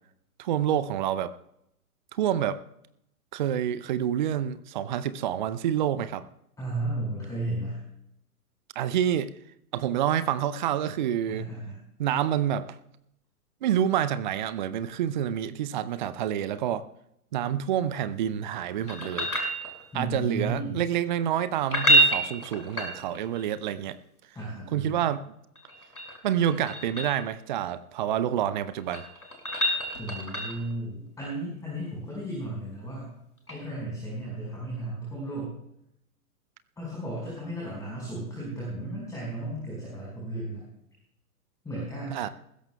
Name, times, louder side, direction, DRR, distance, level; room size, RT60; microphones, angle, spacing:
voice 1, 0.4-1.3 2.2-2.6 3.3-6.3 8.8-9.3 9.7-11.5 12.0-12.7 13.6-16.8 17.3-19.3 19.9-24.0 24.7-25.3 26.2-29.0 42.1-42.3, right 10 dB, 35° right, 0.6 m, -28 dB
voice 2, 6.6-7.8 11.3-11.8 19.9-20.8 24.3-25.0 30.0-33.1 33.5-35.5 36.8-40.6 41.6-42.2, right 1 dB, 10° left, 4.9 m, -34 dB
sound 1, 18.9-20.1 21.6-23.4 25.6-27.2 28.6-30.7 33.5-33.6, right 1 dB, 85° left, 5.6 m, -27 dB
20.0 x 16.5 x 2.3 m
figure-of-eight pair, 115°, 44 cm